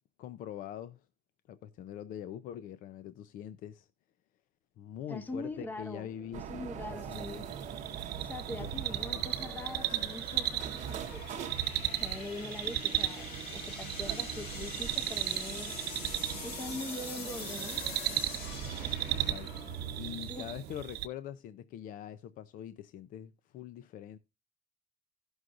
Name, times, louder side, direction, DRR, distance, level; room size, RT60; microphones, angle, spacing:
voice 1, 0.2-1.1 1.5-3.9 4.8-7.5 8.6-8.7 9.0-9.3 19.1-24.2, left 10 dB, 60° left, 0.5 m, -44 dB
voice 2, 5.1-6.1 6.5-7.5 8.2-11.5 12.0-15.8 16.4-17.8 20.2-20.5, left 2 dB, 10° left, 0.6 m, -42 dB
sound 1, 5.2-20.6, left 4 dB, 90° left, 2.5 m, -46 dB
sound 2, 6.3-20.9, right 8 dB, 50° right, 0.8 m, -45 dB
sound 3, 7.1-21.1, right 12 dB, 85° right, 0.9 m, -36 dB
17.0 x 6.3 x 2.5 m
cardioid pair, 175°, 16 cm